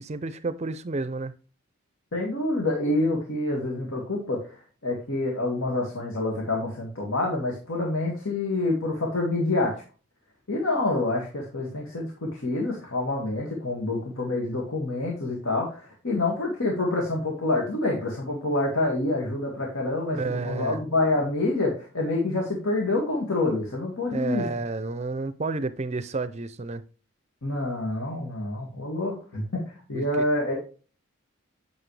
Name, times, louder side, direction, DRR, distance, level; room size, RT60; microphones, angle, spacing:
voice 1, 0.0-1.3 20.1-20.8 24.1-26.8 29.9-30.3, right 3 dB, 30° right, 0.5 m, -31 dB
voice 2, 2.1-9.8 10.5-20.2 20.4-24.5 27.4-29.6 29.9-30.6, left 2 dB, 75° left, 2.0 m, -27 dB
9.0 x 6.4 x 3.3 m
head